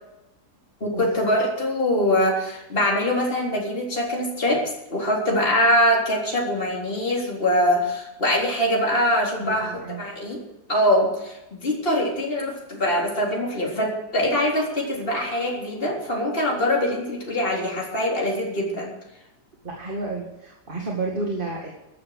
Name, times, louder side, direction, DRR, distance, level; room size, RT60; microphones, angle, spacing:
voice 1, 0.8-4.6 4.9-10.4 10.7-18.9, left 1 dB, 35° left, -2 dB, 4.0 m, -23 dB
voice 2, 9.4-10.0 19.6-21.7, right 3 dB, 30° right, -1 dB, 2.3 m, -31 dB
14.5 x 11.0 x 6.6 m, 0.94 s
omnidirectional pair, 1.8 m